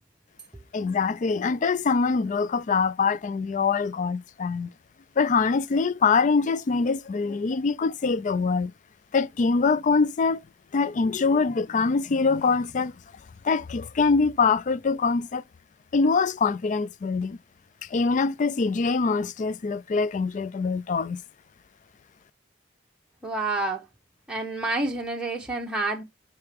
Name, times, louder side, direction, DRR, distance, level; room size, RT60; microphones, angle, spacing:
voice 1, 0.7-4.7 5.2-8.7 9.1-10.4 10.7-12.9 13.4-15.4 15.9-17.4 17.9-21.2, left 4 dB, 40° left, 0.4 m, -24 dB
voice 2, 23.2-23.8 24.3-26.0, right 2 dB, 5° right, 0.9 m, -28 dB
5.8 x 4.7 x 3.4 m
head